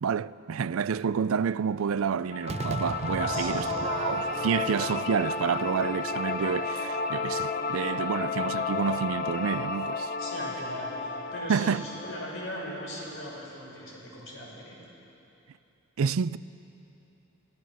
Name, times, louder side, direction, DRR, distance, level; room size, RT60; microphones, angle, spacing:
voice 1, 0.0-10.1 11.5-11.8 16.0-16.4, right 6 dB, 85° right, 0.4 m, -29 dB
sound 1, 2.3-13.4, left 4 dB, 45° left, 1.0 m, -32 dB
Crowd / Fireworks, 2.5-7.7, right 4 dB, 30° right, 0.5 m, -37 dB
voice 2, 3.3-3.7 10.2-14.8, equal, 80° left, 6.2 m, -39 dB
27.0 x 17.0 x 6.5 m
head